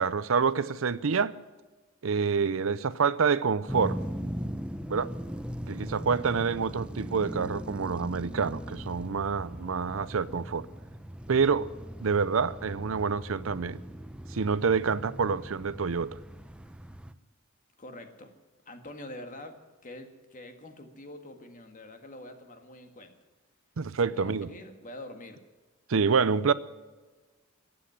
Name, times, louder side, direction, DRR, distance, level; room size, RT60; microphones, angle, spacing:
voice 1, 0.0-1.3 2.0-4.0 4.9-5.1 5.7-10.7 11.3-11.7 12.0-13.8 14.3-16.2 23.8-24.5 25.9-26.5, right 5 dB, 70° right, 0.6 m, -27 dB
sound 1, 3.7-17.1, equal, 5° right, 0.6 m, -39 dB
voice 2, 17.8-18.3 18.6-23.1 24.0-25.4, left 1 dB, 40° left, 1.8 m, -45 dB
15.5 x 8.8 x 9.7 m
head